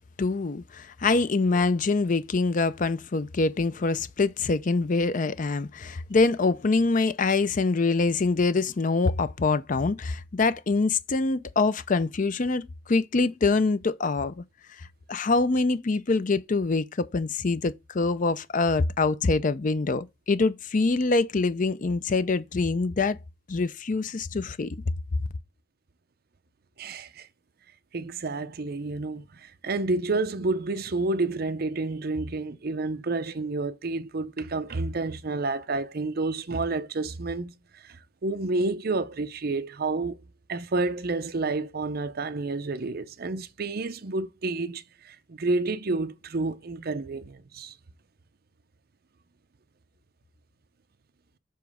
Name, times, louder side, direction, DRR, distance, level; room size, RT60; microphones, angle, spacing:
voice 1, 0.2-14.4 15.1-23.2 23.5-24.8, left 3 dB, 45° left, 0.5 m, -25 dB
voice 2, 26.8-27.3 27.9-40.2 40.5-47.7, right 3 dB, 55° right, 0.6 m, -30 dB
7.0 x 3.1 x 4.9 m
head